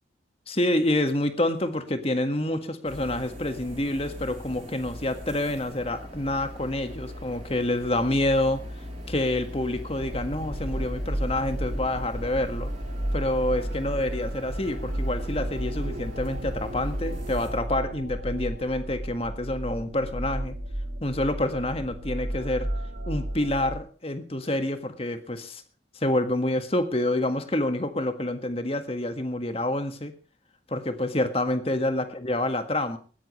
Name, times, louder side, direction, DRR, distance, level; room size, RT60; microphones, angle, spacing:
voice 1, 0.5-8.6 9.1-12.7 13.1-20.6 21.0-22.7 23.1-25.6 25.9-30.1 30.7-33.0, left 1 dB, 30° left, 8 dB, 1.7 m, -27 dB
sound 1, 2.8-17.5, left 1 dB, 30° right, 6.4 m, -40 dB
sound 2, 10.0-23.8, right 1 dB, 65° right, 2.5 m, -33 dB
20.0 x 16.0 x 3.2 m, 0.36 s
head